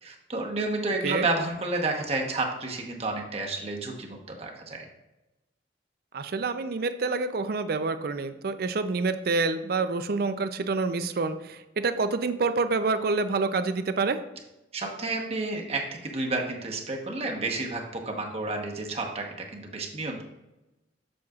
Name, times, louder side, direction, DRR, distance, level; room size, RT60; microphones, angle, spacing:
voice 1, 0.0-4.9 14.7-20.2, right 2 dB, 35° right, 1 dB, 1.0 m, -31 dB
voice 2, 6.1-14.2, right 3 dB, 60° right, 10 dB, 0.5 m, -27 dB
7.7 x 7.1 x 2.4 m, 0.99 s
head